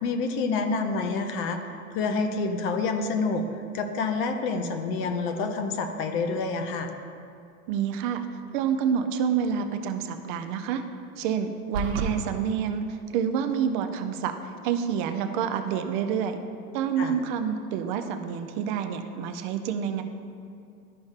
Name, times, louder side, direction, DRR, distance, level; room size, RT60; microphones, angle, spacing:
voice 1, 0.0-1.6 1.9-3.5 3.7-6.9 17.0-17.2, left 4 dB, 25° left, 5 dB, 0.6 m, -28 dB
voice 2, 7.7-8.3 8.5-10.8 11.2-14.3 14.6-16.4 16.7-20.0, right 7 dB, 35° right, 7 dB, 0.5 m, -28 dB
sound 1, 11.7-12.1, right 4 dB, 60° right, 1.1 m, -28 dB
12.5 x 5.1 x 2.4 m, 2.5 s
figure-of-eight pair, 100°, 47 cm